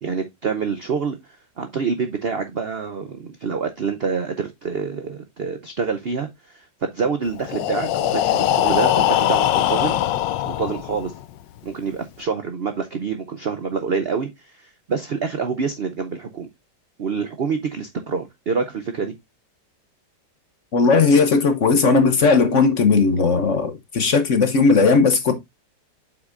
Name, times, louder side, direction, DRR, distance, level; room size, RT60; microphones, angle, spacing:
voice 1, 0.0-1.2 1.6-10.0 10.5-11.1 11.6-16.5 17.0-19.1, right 5 dB, 65° right, 0.6 m, -26 dB
Breathing, 7.4-11.2, left 12 dB, 80° left, 1.2 m, -21 dB
voice 2, 20.7-25.3, left 4 dB, 50° left, 1.0 m, -17 dB
7.8 x 6.0 x 2.5 m
omnidirectional pair, 2.0 m